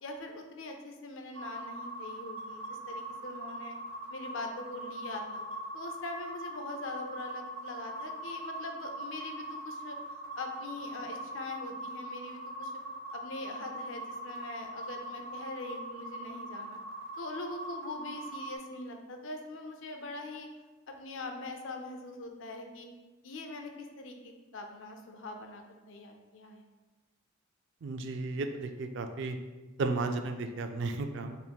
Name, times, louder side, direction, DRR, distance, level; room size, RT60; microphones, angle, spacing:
voice 1, 0.0-3.8 4.1-5.4 5.7-12.7 13.1-16.8 17.2-20.5 20.9-22.9 23.2-26.6, left 2 dB, 65° left, 4 dB, 0.5 m, -42 dB
sound 1, 1.3-18.6, right 1 dB, 80° right, 0.9 m, -42 dB
voice 2, 27.8-29.4 29.8-31.4, right 3 dB, 55° right, 7 dB, 0.3 m, -34 dB
4.3 x 3.5 x 2.2 m, 1.2 s
head